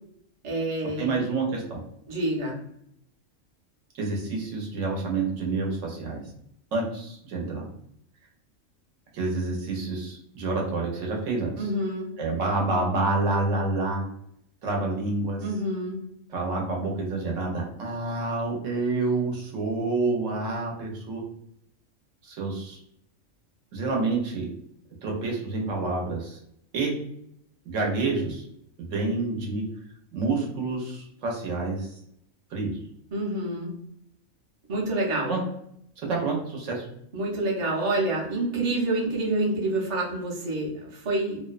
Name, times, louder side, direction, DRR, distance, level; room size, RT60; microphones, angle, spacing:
voice 1, 0.4-1.3 2.1-2.6 11.6-12.1 15.4-16.0 33.1-33.7 34.7-35.4 37.1-41.4, right 2 dB, 35° right, -3 dB, 0.5 m, -27 dB
voice 2, 1.0-1.8 4.0-6.2 6.7-7.7 9.1-11.5 12.2-14.0 14.6-15.4 16.3-21.2 22.3-22.8 23.7-24.5 25.0-26.4 26.7-26.9 27.7-28.4 28.8-29.6 30.1-31.9 32.5-32.7 35.3-35.4 36.0-36.9, right 3 dB, 75° right, -1 dB, 1.0 m, -28 dB
2.6 x 2.1 x 2.3 m, 0.73 s
omnidirectional pair, 1.4 m